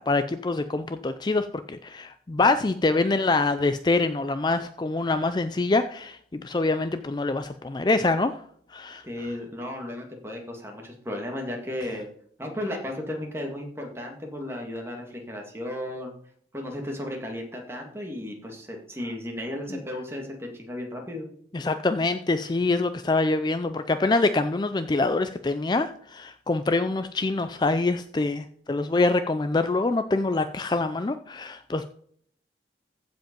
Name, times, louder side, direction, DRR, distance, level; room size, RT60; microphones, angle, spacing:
voice 1, 0.0-8.4 8.7-9.0 19.7-19.8 21.5-31.8, left 3 dB, 25° left, 10 dB, 0.4 m, -25 dB
voice 2, 9.0-12.1 12.4-16.1 16.5-21.3, left 1 dB, 15° right, 2 dB, 2.0 m, -34 dB
15.0 x 5.2 x 5.3 m, 0.63 s
head